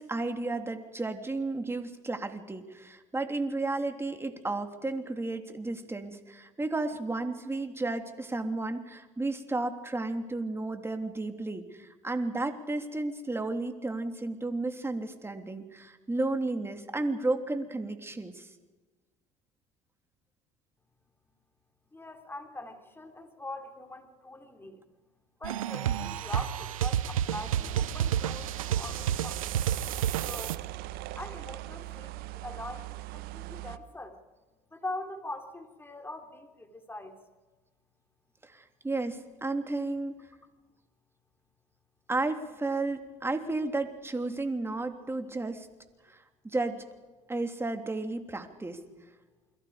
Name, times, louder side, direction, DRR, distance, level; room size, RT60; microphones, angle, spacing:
voice 1, 0.0-18.5 38.4-40.3 42.1-45.7 46.1-46.8 47.3-48.8, right 2 dB, 15° right, 6 dB, 3.1 m, -33 dB
voice 2, 21.9-24.8 25.4-30.6 31.2-34.2 34.7-37.2, left 2 dB, 15° left, 5 dB, 4.0 m, -42 dB
sound 1, 25.4-30.6, right 10 dB, 90° right, 0.8 m, -30 dB
sound 2, 27.3-33.8, right 17 dB, 65° right, 1.2 m, -40 dB
28.5 x 22.5 x 5.2 m, 1.2 s
hypercardioid pair, 75°, 17 cm